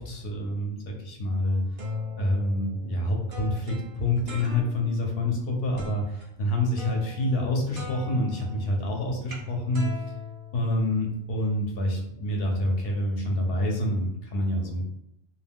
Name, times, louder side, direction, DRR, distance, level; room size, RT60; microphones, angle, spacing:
voice 1, 0.0-1.6 2.2-10.0 10.5-14.8, left 1 dB, 65° left, 0 dB, 0.9 m, -27 dB
sound 1, 1.5-5.0 5.8-6.2 6.8-7.5 7.7-11.2, left 2 dB, 60° right, 0.8 m, -40 dB
2.3 x 2.2 x 3.4 m, 0.80 s
omnidirectional pair, 1.1 m